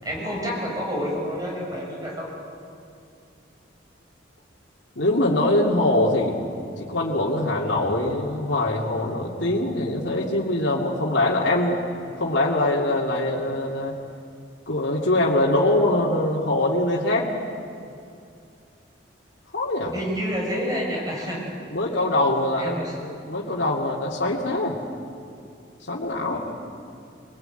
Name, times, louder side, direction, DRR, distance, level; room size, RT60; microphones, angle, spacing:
voice 1, 0.0-2.3 19.9-21.4 22.6-22.9 26.3-26.4, equal, 20° right, -2 dB, 6.6 m, -28 dB
voice 2, 5.0-6.4 6.8-11.8 12.2-14.0 14.7-17.3 19.5-19.9 21.7-24.8 25.8-26.4, left 1 dB, 70° left, -4 dB, 2.6 m, -23 dB
23.0 x 21.0 x 9.1 m, 2.5 s
head